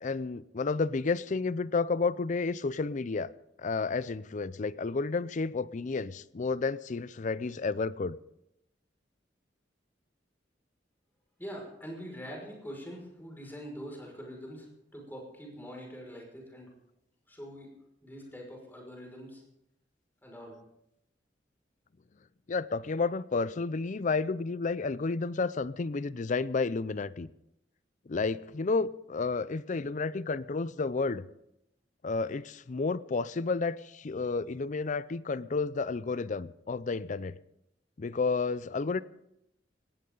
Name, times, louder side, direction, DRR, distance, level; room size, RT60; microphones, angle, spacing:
voice 1, 0.0-3.3 3.6-8.2 22.5-27.3 28.1-31.2 32.0-37.3 38.0-39.0, left 4 dB, 45° left, 18 dB, 0.5 m, -31 dB
voice 2, 11.4-14.7 14.9-16.7 17.3-17.7 18.0-19.4 20.2-20.6, equal, 10° left, 0 dB, 5.7 m, -44 dB
19.0 x 18.0 x 3.9 m, 0.81 s
head